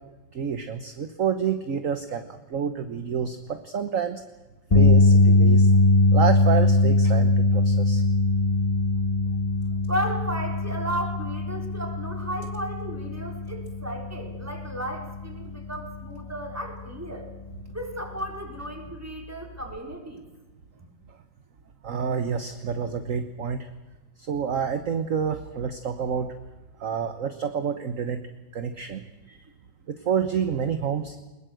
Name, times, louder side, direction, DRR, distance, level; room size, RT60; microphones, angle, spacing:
voice 1, 0.3-4.2 4.7-5.8 6.1-8.0 21.8-23.7 24.2-26.3 26.8-28.2 28.5-29.4 29.9-31.2, right 7 dB, 50° right, 9 dB, 1.4 m, -28 dB
sound 1, 4.7-17.0 17.3-17.6 19.7-19.8, left 2 dB, 25° left, 1.4 m, -21 dB
voice 2, 9.9-17.3 17.7-20.2, right 1 dB, 10° right, 2 dB, 4.0 m, -34 dB
22.0 x 21.0 x 7.8 m, 1.1 s
omnidirectional pair, 2.0 m